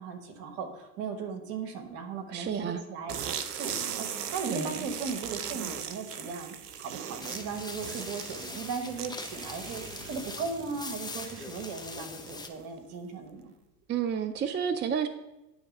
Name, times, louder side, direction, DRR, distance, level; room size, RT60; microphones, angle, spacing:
voice 1, 0.0-3.2 3.4-13.5, right 5 dB, 65° right, 5 dB, 1.4 m, -37 dB
voice 2, 2.3-2.8 4.5-4.9 13.9-15.1, right 7 dB, 25° right, 10 dB, 0.5 m, -30 dB
sound 1, 3.1-12.6, right 8 dB, 85° right, 0.7 m, -39 dB
sound 2, 7.2-12.5, left 3 dB, 10° left, 0.7 m, -42 dB
9.3 x 3.3 x 5.4 m, 0.97 s
hypercardioid pair, 70°, 46 cm